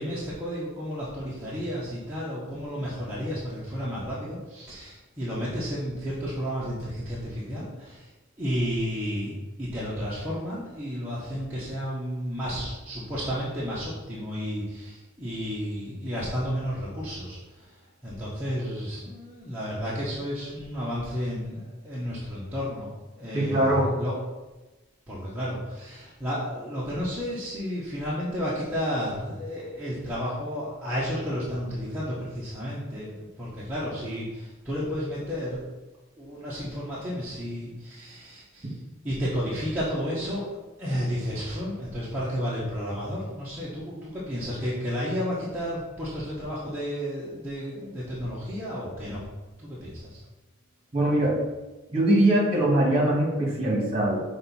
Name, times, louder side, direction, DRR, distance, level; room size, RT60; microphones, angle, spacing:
voice 1, 0.0-8.1 8.4-17.7 18.0-24.2 25.1-35.7 36.2-38.8 39.0-49.2 49.6-50.2, equal, 10° right, -10 dB, 1.2 m, -32 dB
voice 2, 23.3-23.9 50.9-51.3 51.9-54.2, right 1 dB, 25° right, -4 dB, 2.1 m, -22 dB
6.5 x 4.0 x 4.3 m, 1.1 s
head